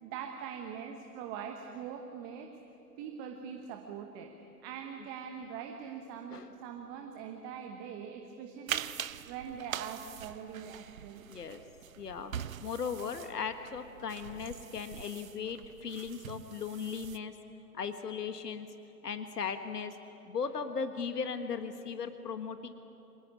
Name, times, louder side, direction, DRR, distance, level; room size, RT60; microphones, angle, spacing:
voice 1, 0.0-2.5 3.0-4.3 4.6-8.8 9.2-11.2, right 7 dB, 20° right, 4 dB, 1.1 m, -42 dB
sound 1, 8.7-17.2, right 9 dB, 60° right, 0.8 m, -43 dB
voice 2, 11.3-11.6 12.0-17.3 17.7-18.7 19.0-20.0 20.3-22.7, left 6 dB, 75° left, 8 dB, 1.6 m, -37 dB
26.0 x 19.0 x 9.7 m, 2.9 s
figure-of-eight pair, 130°, 48 cm